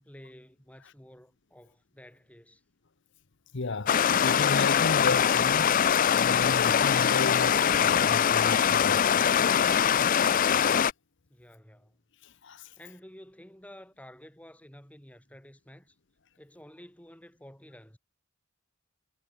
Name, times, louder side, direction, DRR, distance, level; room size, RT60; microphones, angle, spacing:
voice 1, 0.0-2.6 11.3-12.0 12.8-16.0 16.4-18.0, equal, 5° left, 5.6 m, -51 dB
voice 2, 3.5-5.7 6.2-9.2 12.2-12.7, left 3 dB, 60° left, 1.0 m, -34 dB
Stream, 3.9-10.9, left 8 dB, 40° left, 0.4 m, -23 dB
head